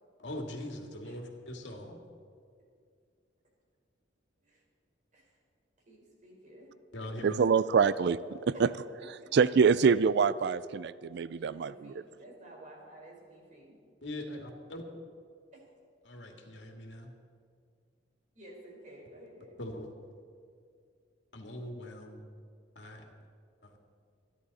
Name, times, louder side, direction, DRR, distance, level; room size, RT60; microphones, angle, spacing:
voice 1, 0.2-2.0 6.9-7.5 14.0-14.8 16.0-17.1 19.6-20.1 21.3-22.2 22.8-23.0 23.6-23.8, left 1 dB, 75° left, 2 dB, 2.2 m, -42 dB
voice 2, 5.9-6.7 8.5-8.6 11.4-13.8 15.5-15.6 18.3-19.5, right 1 dB, 45° right, -2 dB, 4.5 m, -52 dB
voice 3, 7.2-8.7 9.3-11.9, right 6 dB, 65° right, 16 dB, 0.4 m, -25 dB
27.0 x 10.5 x 4.2 m, 2.3 s
head